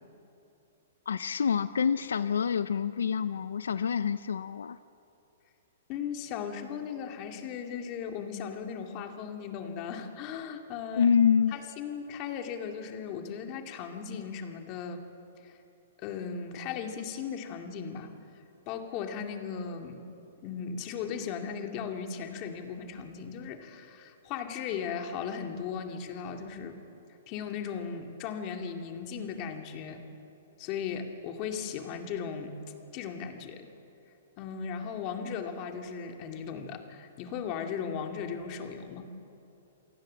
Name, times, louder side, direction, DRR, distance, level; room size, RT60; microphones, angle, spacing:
voice 1, 1.1-4.8 11.0-11.5, left 7 dB, 90° left, 14 dB, 0.6 m, -26 dB
voice 2, 5.9-11.1 11.5-15.0 15.4-15.6 16.0-18.1 18.7-20.0 20.4-26.8 27.3-30.0 30.6-32.6 32.9-33.7 34.4-39.1, left 7 dB, 35° left, 5 dB, 2.3 m, -37 dB
28.5 x 18.0 x 7.7 m, 2.8 s
hypercardioid pair, 150°, 0 cm